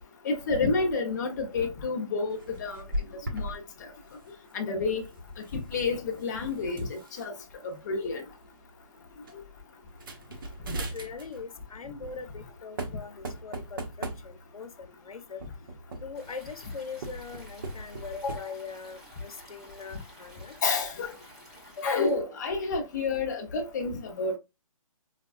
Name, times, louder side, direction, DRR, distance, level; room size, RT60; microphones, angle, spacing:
voice 1, 0.2-2.8 3.3-3.6 4.5-5.0 5.5-7.3 7.6-8.2 20.6-21.1 21.8-24.4, left 4 dB, 30° left, 0.9 m, -29 dB
sound 1, 2.3-3.6 3.9-4.2 5.3-7.2 8.0-8.1 8.4-8.7 9.2-9.3 9.9-11.5 12.4-12.5 12.8-14.6 15.4-16.3 16.9-18.4, right 1 dB, 40° right, 0.9 m, -38 dB
voice 2, 10.9-15.4 16.0-20.6 21.8-22.2, left 4 dB, 90° left, 0.8 m, -40 dB
Stream, 16.1-22.1, equal, 5° right, 0.8 m, -52 dB
5.0 x 2.3 x 2.4 m
hypercardioid pair, 165°, 18 cm